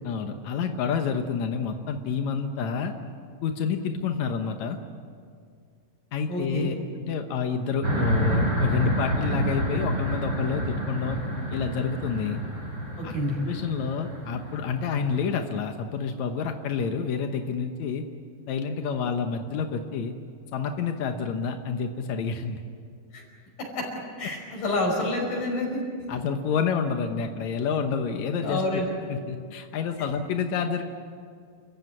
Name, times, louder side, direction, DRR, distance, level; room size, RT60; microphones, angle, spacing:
voice 1, 0.0-2.9 3.4-4.8 6.1-6.7 7.1-11.2 11.5-12.4 13.0-13.1 13.5-18.0 18.5-20.1 20.5-22.6 26.1-28.8 29.1-30.8, left 6 dB, 80° left, 5 dB, 1.6 m, -28 dB
voice 2, 6.3-6.7 13.0-13.4 23.1-23.2 23.6-23.9 24.2-25.8 28.4-28.9, left 1 dB, 50° left, 0 dB, 6.8 m, -28 dB
sound 1, 7.8-15.3, equal, 30° right, 5.4 m, -28 dB
28.5 x 15.5 x 9.6 m, 2.1 s
omnidirectional pair, 4.8 m